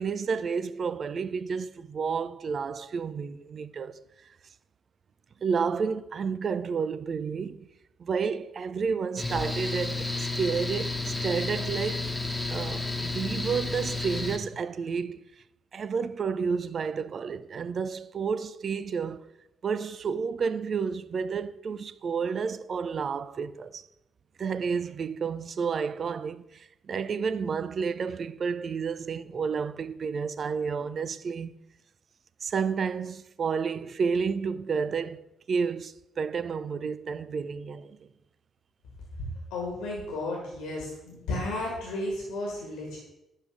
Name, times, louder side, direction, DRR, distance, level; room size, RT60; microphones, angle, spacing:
voice 1, 0.0-4.0 5.4-7.7 8.0-12.1 12.5-15.3 15.7-19.3 19.6-23.8 24.4-31.6 32.4-38.0, right 6 dB, 50° right, 0.4 m, -31 dB
Mechanical fan, 9.2-14.4, left 3 dB, 15° left, 1.3 m, -31 dB
voice 2, 39.5-43.0, left 2 dB, 75° left, 1.6 m, -33 dB
11.0 x 3.6 x 4.9 m
hypercardioid pair, 40°, 0 cm